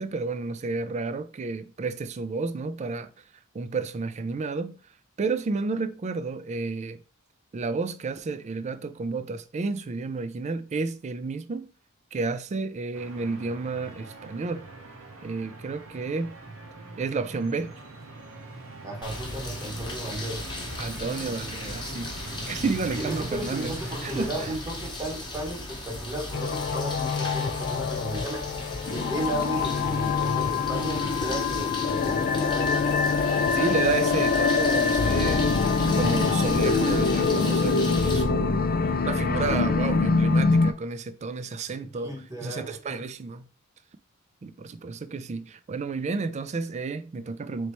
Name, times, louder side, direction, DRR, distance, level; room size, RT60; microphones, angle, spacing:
voice 1, 0.0-3.1 3.5-4.8 5.2-7.0 7.5-11.7 12.1-14.7 15.2-16.4 17.0-17.7 20.8-22.1 22.5-23.7 24.0-24.3 33.5-35.5 35.9-38.6 39.0-42.1 42.4-43.5 44.4-47.7, right 4 dB, 30° right, 0.3 m, -31 dB
sound 1, 12.9-24.6, right 3 dB, 65° right, 0.8 m, -41 dB
voice 2, 18.8-20.5 22.9-28.5 28.9-32.9 37.9-38.4 41.8-43.1, right 1 dB, 15° right, 1.0 m, -35 dB
sound 2, 19.0-38.2, left 2 dB, 20° left, 1.0 m, -36 dB
sound 3, 26.3-40.7, left 4 dB, 40° left, 0.4 m, -24 dB
4.1 x 3.2 x 3.0 m
head